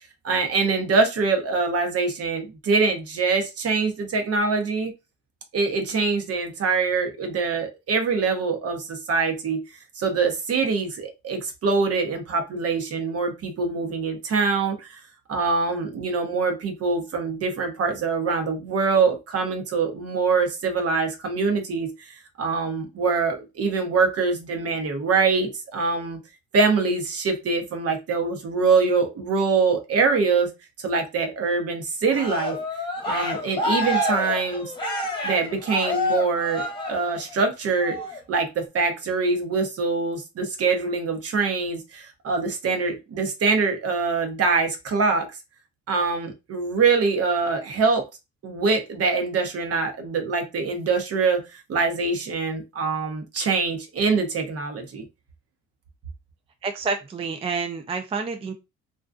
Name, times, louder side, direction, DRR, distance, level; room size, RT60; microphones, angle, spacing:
voice 1, 0.2-4.9 5.5-9.6 10.0-15.0 15.3-26.2 26.5-30.5 30.8-32.6 33.0-34.7 35.2-38.0 38.3-45.3 45.9-48.0 48.4-55.0, right 4 dB, 50° right, 5 dB, 0.8 m, -24 dB
Cheering, 32.1-37.4 37.8-38.2, left 2 dB, 15° left, 1.0 m, -28 dB
voice 2, 56.6-58.5, right 4 dB, 20° right, 6 dB, 0.4 m, -28 dB
2.6 x 2.2 x 2.4 m, 0.25 s
supercardioid pair, 75°, 31 cm